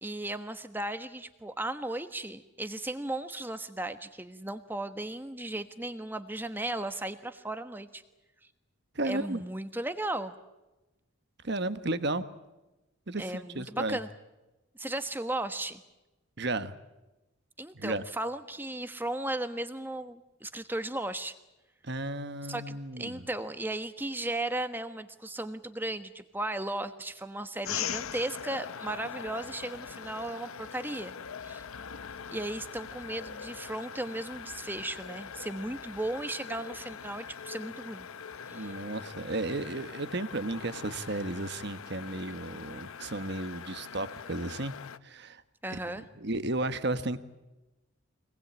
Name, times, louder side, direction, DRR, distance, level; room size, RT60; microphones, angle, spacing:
voice 1, 0.0-8.0 9.0-10.3 13.2-14.1 14.8-15.8 17.6-21.4 22.5-31.1 31.4-31.6 32.3-38.0 38.5-38.7 45.6-46.0, right 1 dB, 10° right, 9 dB, 1.2 m, -36 dB
voice 2, 8.9-9.4 11.4-12.3 13.1-14.0 16.4-16.7 17.7-18.0 21.8-23.2 38.5-44.7 45.0-45.4 45.9-47.2, right 2 dB, 55° right, 11 dB, 1.3 m, -33 dB
sound 1, 27.6-45.0, left 7 dB, 85° left, 0.8 m, -42 dB
25.0 x 19.5 x 8.9 m, 1.0 s
head